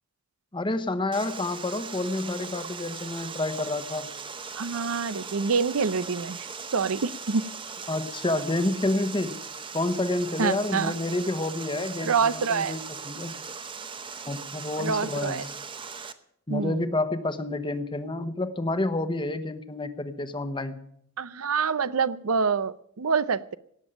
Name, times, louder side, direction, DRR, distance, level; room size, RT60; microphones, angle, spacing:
voice 1, 0.5-4.1 7.9-9.4 9.7-13.3 14.3-15.5 16.5-20.9, left 2 dB, 25° left, 11 dB, 1.0 m, -29 dB
Water, 1.1-16.1, right 5 dB, 25° right, 0.8 m, -39 dB
voice 2, 4.5-6.5 6.7-7.5 10.4-10.9 12.0-12.8 14.8-15.5 16.5-16.9 21.2-23.6, right 5 dB, 85° right, 16 dB, 0.6 m, -26 dB
18.0 x 7.2 x 8.8 m, 0.70 s
head